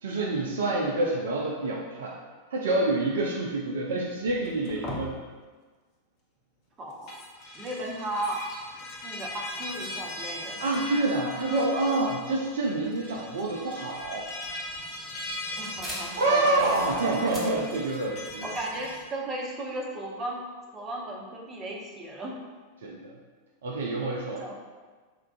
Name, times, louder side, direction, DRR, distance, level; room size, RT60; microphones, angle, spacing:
voice 1, 0.0-2.2 2.5-5.2 10.6-14.3 16.2-18.5 22.8-23.1 23.6-24.4, right 2 dB, 60° right, -1 dB, 0.3 m, -27 dB
sound 1, 4.3-5.1 6.9-19.0, left 1 dB, 40° left, 0.6 m, -39 dB
voice 2, 6.8-7.2 7.5-8.4 9.0-10.6 15.5-16.4 18.4-20.4 20.7-22.4 24.4-24.5, right 1 dB, 25° right, -2 dB, 0.6 m, -35 dB
sound 2, 13.9-19.1, equal, 5° right, 1.0 m, -43 dB
4.3 x 2.3 x 2.3 m, 1.4 s
figure-of-eight pair, 90°, 0 cm